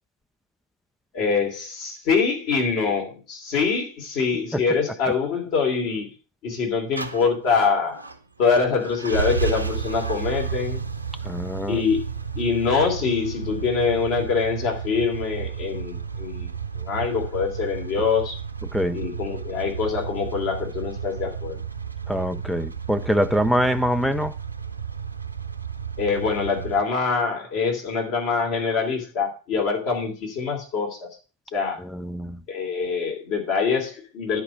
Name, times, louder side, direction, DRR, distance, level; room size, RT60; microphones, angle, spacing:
voice 1, 1.1-6.1 6.4-8.1 8.4-10.8 11.7-12.0 12.3-16.5 16.8-18.4 18.9-21.6 26.0-31.1 31.5-31.8 32.5-34.4, left 5 dB, 40° left, 3.0 m, -24 dB
sound 1, 7.0-26.8, right 6 dB, 80° right, 0.7 m, -32 dB
voice 2, 11.3-11.8 18.7-19.0 22.1-24.3 31.9-32.4, equal, ahead, 0.4 m, -24 dB
10.0 x 4.7 x 6.1 m
figure-of-eight pair, 90°, 0 cm